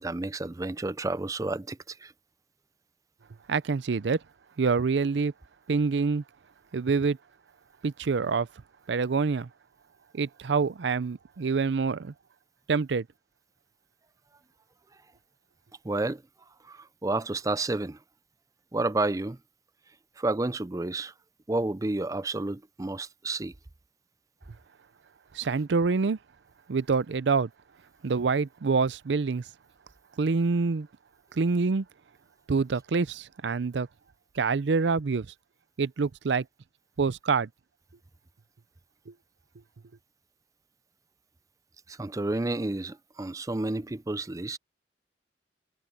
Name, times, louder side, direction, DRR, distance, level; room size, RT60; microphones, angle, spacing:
voice 1, 0.0-2.1 15.8-16.2 16.6-18.0 18.7-19.4 20.2-21.1 21.5-23.5 41.9-44.6, right 2 dB, 20° right, 0.5 m, -30 dB
voice 2, 3.5-4.2 4.6-5.3 5.7-6.2 6.7-7.2 7.8-8.5 8.9-9.5 10.1-12.1 12.7-13.1 25.3-26.2 26.7-27.5 28.0-29.4 30.2-30.9 31.3-31.9 32.5-33.9 34.4-35.3 35.8-36.5 37.0-37.5 39.1-39.2, right 4 dB, 85° right, 0.5 m, -26 dB
head